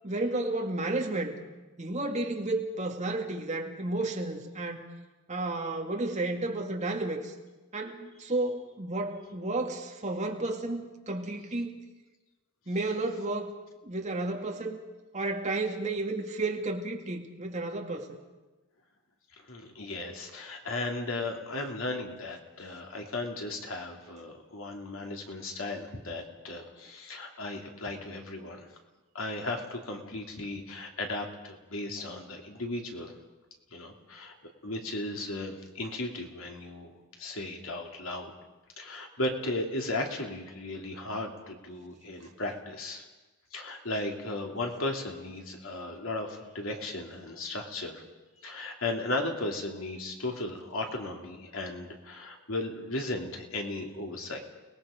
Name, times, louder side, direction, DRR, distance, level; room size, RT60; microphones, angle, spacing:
voice 1, 0.0-1.4 1.8-4.8 5.3-7.3 7.7-11.8 12.7-13.5 13.8-14.8 15.1-18.2, right 2 dB, 35° right, 2 dB, 2.2 m, -32 dB
voice 2, 19.4-28.7 29.1-33.1 33.7-34.3 34.6-38.3 38.8-43.1 43.5-48.0 48.4-54.4, left 2 dB, 80° left, 2 dB, 2.9 m, -36 dB
29.5 x 20.0 x 5.2 m, 1.2 s
head